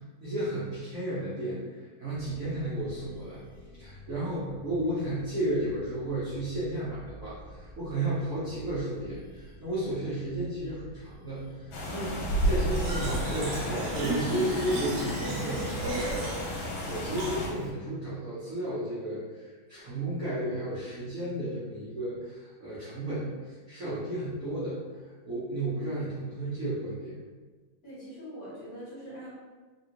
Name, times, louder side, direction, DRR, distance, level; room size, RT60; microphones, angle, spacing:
voice 1, 0.2-3.4 3.8-16.1 16.9-24.8 25.2-27.1, right 1 dB, 55° right, -11 dB, 1.0 m, -33 dB
sound 1, 2.1-14.6, right 1 dB, 25° right, 0.8 m, -49 dB
sound 2, 11.7-17.5, equal, 75° left, 1.4 m, -32 dB
Fill (with liquid), 12.7-17.7, right 2 dB, 75° right, 1.4 m, -35 dB
voice 2, 27.8-29.3, equal, 50° left, -10 dB, 1.6 m, -43 dB
3.5 x 2.3 x 2.8 m, 1.4 s
omnidirectional pair, 2.2 m